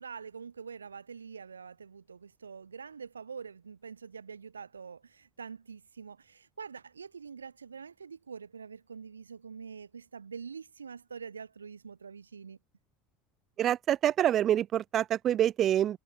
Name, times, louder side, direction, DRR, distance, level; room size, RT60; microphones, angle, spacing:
voice 1, 0.0-12.6, right 6 dB, 80° right, 1.3 m, -45 dB
voice 2, 13.6-16.0, right 11 dB, 40° right, 0.3 m, -26 dB
figure-of-eight pair, 70°, 0 cm